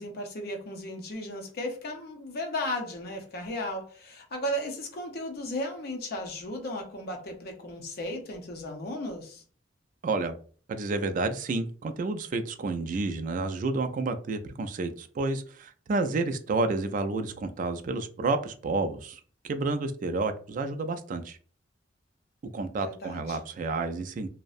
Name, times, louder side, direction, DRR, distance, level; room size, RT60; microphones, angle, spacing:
voice 1, 0.0-9.4 22.8-23.4, left 1 dB, 55° left, 0.6 m, -35 dB
voice 2, 10.0-10.3 10.7-21.4 22.5-24.3, right 3 dB, 45° right, 0.3 m, -30 dB
2.6 x 2.0 x 2.4 m
head